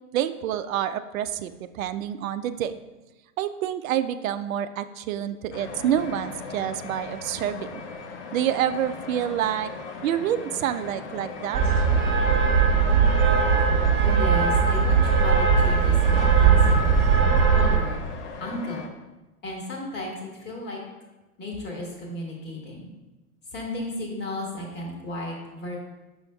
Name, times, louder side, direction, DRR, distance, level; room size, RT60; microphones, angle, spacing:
voice 1, 0.1-2.7 3.4-7.8 8.3-9.7 10.0-11.6, right 10 dB, 65° right, 10 dB, 0.5 m, -27 dB
sound 1, 5.5-18.9, left 4 dB, 50° left, 0.8 m, -38 dB
sound 2, 11.5-17.8, right 6 dB, 25° right, 1.4 m, -19 dB
voice 2, 14.0-17.0 17.4-18.0 18.4-18.9 19.4-20.8 21.4-22.9 23.5-25.8, left 1 dB, 25° left, -2 dB, 1.6 m, -34 dB
6.8 x 6.2 x 2.2 m, 1.1 s
hypercardioid pair, 110°, 44 cm